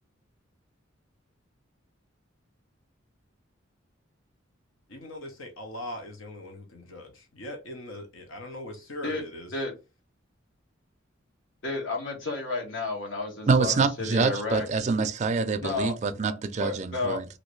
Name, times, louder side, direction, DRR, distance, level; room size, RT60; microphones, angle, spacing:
voice 1, 4.9-9.5, left 1 dB, 85° left, 0.8 m, -40 dB
voice 2, 11.6-14.7 15.6-15.9 16.6-17.2, left 3 dB, 70° left, 1.3 m, -31 dB
voice 3, 13.5-17.3, right 4 dB, 35° right, 0.4 m, -26 dB
3.1 x 2.6 x 3.1 m
head